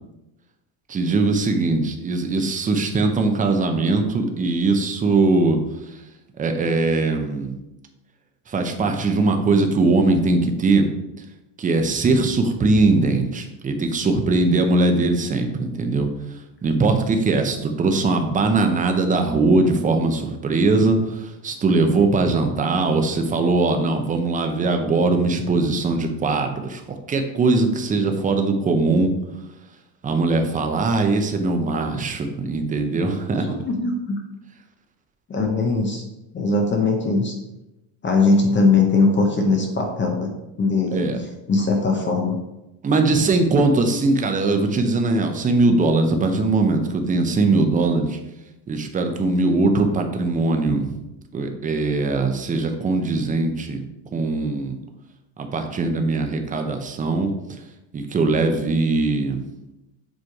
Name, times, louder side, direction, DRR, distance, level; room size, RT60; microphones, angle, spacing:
voice 1, 0.9-5.6 5.9-6.0 6.4-7.6 8.5-10.9 11.6-16.1 16.6-26.8 27.1-29.1 30.0-33.5 40.9-41.2 42.8-48.2 48.7-51.0 51.3-53.8 54.1-54.8 55.4-57.3 57.9-59.4, right 3 dB, 20° right, 5 dB, 0.5 m, -20 dB
voice 2, 33.5-34.2 35.3-36.0 36.3-37.3 38.0-40.3 40.6-41.1 41.5-42.4, left 3 dB, 25° left, 3 dB, 0.7 m, -20 dB
7.6 x 3.1 x 4.7 m, 0.94 s
cardioid pair, 155°, 46 cm